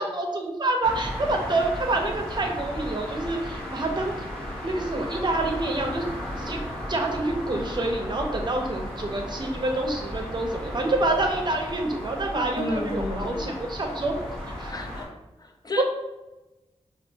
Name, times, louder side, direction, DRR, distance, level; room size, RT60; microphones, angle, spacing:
voice 1, 0.0-4.3 4.6-6.1 6.4-6.6 6.9-14.2 14.6-14.7 15.8-15.9, right 2 dB, 40° right, 2 dB, 0.6 m, -27 dB
sound 1, 0.8-15.0, equal, 5° left, 1.1 m, -35 dB
voice 2, 12.6-13.6 14.7-15.1 15.4-15.8, left 2 dB, 35° left, 4 dB, 0.4 m, -32 dB
5.6 x 2.4 x 2.7 m, 1.0 s
wide cardioid pair, 100°, 12 cm